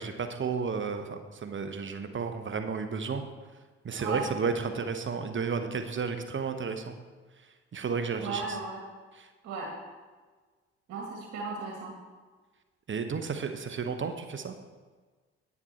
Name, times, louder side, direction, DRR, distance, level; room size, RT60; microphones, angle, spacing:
voice 1, 0.0-3.2 3.8-7.0 7.7-8.4 9.1-9.3 12.9-14.5, right 5 dB, 40° right, 7 dB, 1.1 m, -32 dB
voice 2, 8.2-8.8 9.4-9.7 10.9-11.9, right 4 dB, 65° right, -1 dB, 1.9 m, -35 dB
9.8 x 9.2 x 4.4 m, 1.4 s
hypercardioid pair, 50°, 31 cm